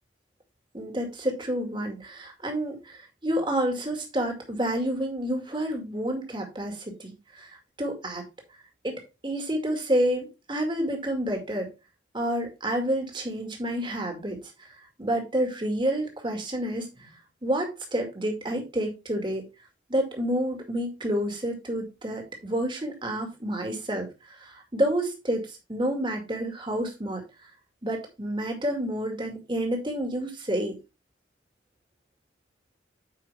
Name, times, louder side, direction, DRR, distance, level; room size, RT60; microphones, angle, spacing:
voice 1, 0.7-8.2 8.8-11.7 12.1-14.4 15.0-17.1 17.4-19.4 19.9-27.2 27.8-30.7, right 1 dB, 25° right, 3 dB, 2.1 m, -29 dB
8.7 x 5.6 x 3.4 m, 0.27 s
head